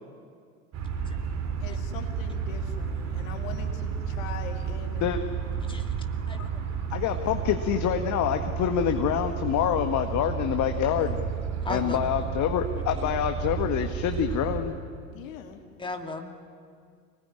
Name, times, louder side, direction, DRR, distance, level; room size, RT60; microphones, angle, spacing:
sound 1, 0.7-14.6, right 6 dB, 40° right, 3.4 m, -32 dB
voice 1, 1.6-5.1 15.1-15.6, left 7 dB, 65° left, 5 dB, 3.0 m, -42 dB
voice 2, 6.3-6.6 11.6-12.1 13.0-13.1 15.8-16.3, left 3 dB, 10° left, 4 dB, 2.5 m, -36 dB
voice 3, 6.9-11.2 11.7-14.8, left 9 dB, 45° left, 6 dB, 1.7 m, -26 dB
25.5 x 19.5 x 9.9 m, 2.1 s
figure-of-eight pair, 75°, 42 cm